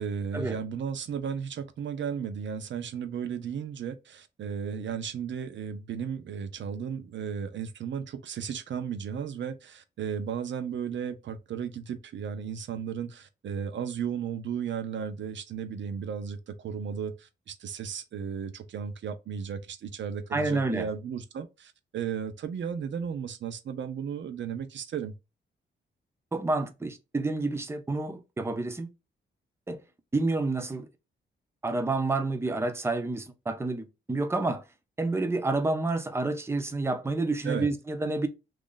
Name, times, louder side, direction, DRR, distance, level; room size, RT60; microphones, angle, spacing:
voice 1, 0.0-25.1 37.4-37.7, right 7 dB, 65° right, 0.6 m, -35 dB
voice 2, 20.3-20.9 26.3-28.9 29.7-29.8 30.1-30.9 31.6-34.6 35.0-38.3, right 2 dB, 10° right, 0.5 m, -29 dB
3.0 x 2.5 x 3.8 m
wide cardioid pair, 120°, 20 cm